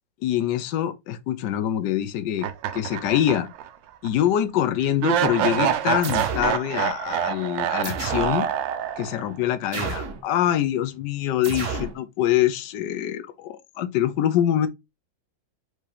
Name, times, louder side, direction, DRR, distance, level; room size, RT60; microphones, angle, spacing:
voice 1, 0.2-3.5 4.0-8.5 9.0-14.7, left 11 dB, 70° left, 1.2 m, -24 dB
sound 1, 2.4-3.7 4.0-4.1 5.0-9.3, right 10 dB, 80° right, 1.3 m, -26 dB
sound 2, 6.0-6.6 7.8-8.4 9.7-10.2 11.4-12.0, right 5 dB, 55° right, 0.9 m, -30 dB
4.8 x 2.8 x 3.3 m
omnidirectional pair, 2.0 m